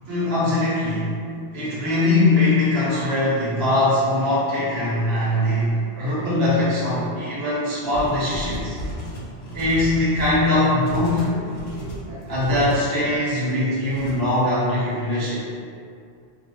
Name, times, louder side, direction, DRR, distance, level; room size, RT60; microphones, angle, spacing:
voice 1, 0.1-1.1 1.5-8.8 9.5-11.3 12.3-15.4, left 2 dB, 70° right, -9 dB, 1.2 m, -21 dB
voice 2, 5.2-5.8 7.0-7.1 11.3-11.4 11.7-12.6, left 1 dB, 10° right, -17 dB, 0.9 m, -39 dB
sound 1, 7.9-12.8 13.9-14.2, equal, 75° left, 0.9 m, -33 dB
2.5 x 2.3 x 3.1 m, 2.4 s
omnidirectional pair, 1.1 m